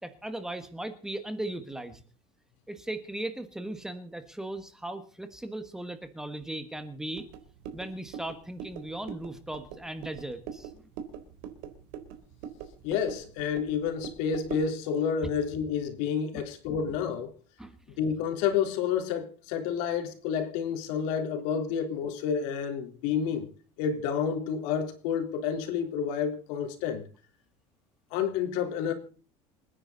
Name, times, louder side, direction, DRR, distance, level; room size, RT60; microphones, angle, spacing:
voice 1, 0.0-2.0 2.7-7.2 7.7-10.7 17.6-18.0, right 1 dB, 5° right, 1.4 m, -38 dB
sound 1, 7.1-14.8, right 8 dB, 90° right, 3.7 m, -43 dB
voice 2, 12.8-17.3 18.0-23.5 23.8-27.0 28.1-28.9, left 7 dB, 80° left, 3.7 m, -29 dB
28.0 x 10.0 x 4.0 m
cardioid pair, 175°, 12 cm